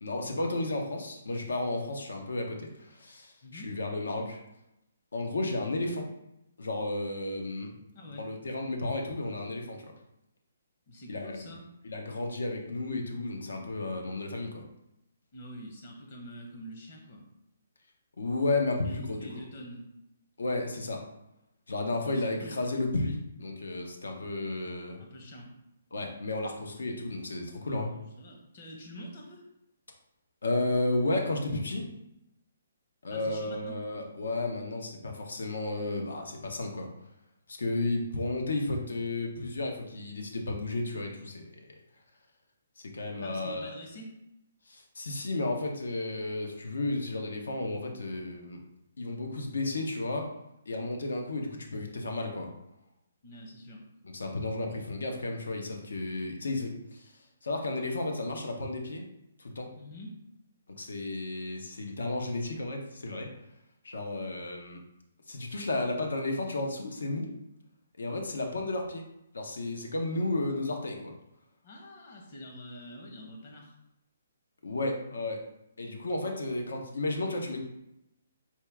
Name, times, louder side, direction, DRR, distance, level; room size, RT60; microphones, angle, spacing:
voice 1, 0.0-4.4 5.1-6.1 6.6-7.8 8.2-9.9 11.1-11.4 11.8-14.6 18.2-19.2 20.4-21.0 21.7-25.0 25.9-27.9 30.4-31.8 33.0-36.9 37.5-41.5 42.8-43.7 44.7-48.6 49.0-50.3 50.7-52.5 54.1-57.1 57.4-59.1 59.4-59.7 60.8-63.3 63.8-64.8 65.3-67.3 68.0-69.0 69.3-71.1 74.6-75.4 75.8-77.6, left 2 dB, 85° left, 2 dB, 0.8 m, -33 dB
voice 2, 3.4-3.7 7.9-8.2 10.9-11.6 15.3-17.2 18.7-19.9 22.1-22.6 25.0-25.5 27.9-29.4 33.1-33.8 43.2-44.1 53.2-53.8 59.7-60.2 71.6-73.7, equal, 45° left, 0 dB, 0.9 m, -46 dB
4.5 x 2.3 x 3.4 m, 0.84 s
hypercardioid pair, 160°, 0 cm